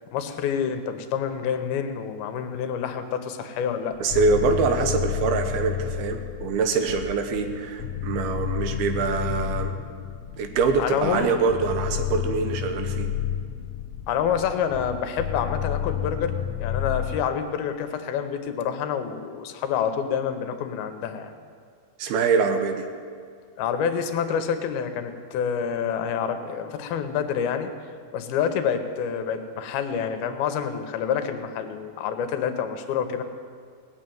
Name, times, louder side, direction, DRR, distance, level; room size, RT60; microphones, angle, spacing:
voice 1, 0.1-4.0 10.8-11.4 14.1-16.3 16.6-21.3 23.6-27.7 28.1-33.2, left 7 dB, 80° left, 8 dB, 2.8 m, -27 dB
sound 1, 3.9-17.3, left 10 dB, 65° left, 1.8 m, -31 dB
voice 2, 4.0-9.7 10.4-13.1 22.0-22.9, right 4 dB, 80° right, 6 dB, 3.0 m, -24 dB
18.5 x 7.0 x 9.3 m, 2.1 s
omnidirectional pair, 4.3 m